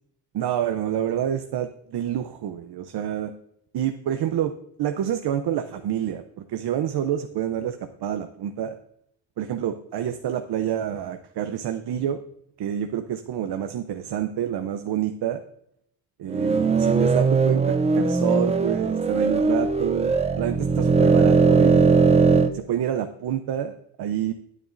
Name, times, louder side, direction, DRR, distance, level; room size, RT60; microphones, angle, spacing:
voice 1, 0.3-3.3 3.7-4.5 4.8-8.8 9.4-12.2 12.6-15.4 16.2-22.1 22.5-24.3, right 10 dB, 60° right, 8 dB, 0.6 m, -28 dB
sound 1, 16.3-22.5, right 4 dB, 15° right, 0.4 m, -19 dB
9.6 x 8.0 x 2.5 m, 0.72 s
cardioid pair, 115°, 44 cm